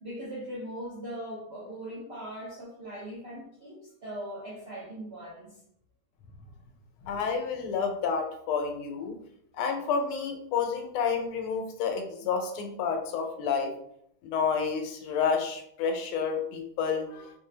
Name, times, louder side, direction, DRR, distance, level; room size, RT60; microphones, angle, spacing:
voice 1, 0.0-5.6, right 1 dB, 65° right, -6 dB, 0.6 m, -40 dB
voice 2, 7.0-9.1 9.6-13.7 14.2-17.3, left 6 dB, 90° left, 4 dB, 1.6 m, -30 dB
4.2 x 2.2 x 3.2 m, 0.72 s
omnidirectional pair, 2.3 m